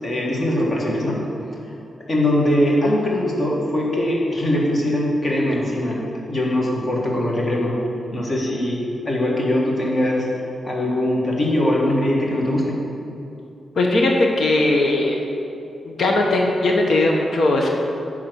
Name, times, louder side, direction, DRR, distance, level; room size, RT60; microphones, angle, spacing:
voice 1, 0.0-1.2 1.6-1.7 2.1-7.8 8.1-10.3 10.6-12.8, left 1 dB, 35° left, -3 dB, 1.7 m, -21 dB
voice 2, 13.8-15.2 15.8-17.7, left 2 dB, 65° left, 0 dB, 1.0 m, -18 dB
9.8 x 3.8 x 6.2 m, 2.7 s
wide cardioid pair, 120°, 0 cm